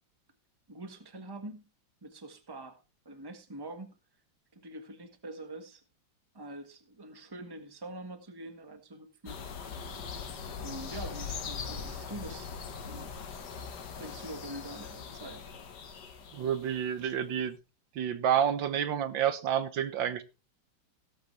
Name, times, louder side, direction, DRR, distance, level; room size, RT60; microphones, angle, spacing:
voice 1, 0.7-1.6 2.0-2.8 3.0-3.9 4.5-5.8 6.3-9.4 9.8-9.9 10.5-12.5 12.8-13.1 14.0-15.4, right 2 dB, 15° right, 1.4 m, -44 dB
sound 1, 9.3-17.0, left 6 dB, 60° left, 1.9 m, -41 dB
voice 2, 16.3-17.6 18.0-20.2, right 9 dB, 75° right, 1.8 m, -29 dB
17.0 x 8.1 x 3.2 m
omnidirectional pair, 2.1 m